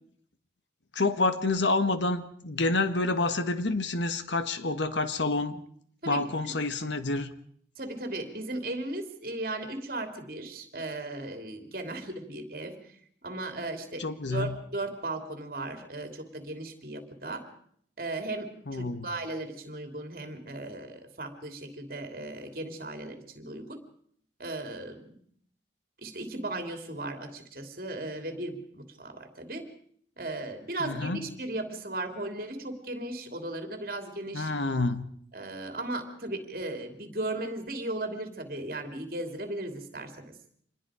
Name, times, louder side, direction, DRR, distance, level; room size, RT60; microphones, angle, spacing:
voice 1, 0.9-5.6 6.1-7.3 14.0-14.5 18.7-19.1 30.8-31.2 34.3-35.1, left 3 dB, 90° left, 10 dB, 1.6 m, -28 dB
voice 2, 6.0-6.5 7.8-17.5 18.0-23.8 24.4-25.2 26.0-29.6 30.2-34.5 35.3-40.4, right 2 dB, 50° right, 5 dB, 3.0 m, -36 dB
26.5 x 21.0 x 5.0 m, 0.64 s
head